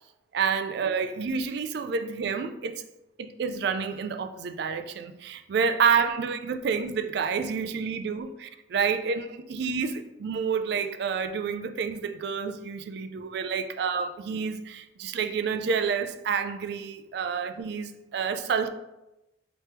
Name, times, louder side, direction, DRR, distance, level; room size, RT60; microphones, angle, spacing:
voice 1, 0.3-2.8 3.2-18.7, right 6 dB, 55° right, 9 dB, 0.3 m, -29 dB
3.3 x 3.0 x 4.4 m, 0.94 s
head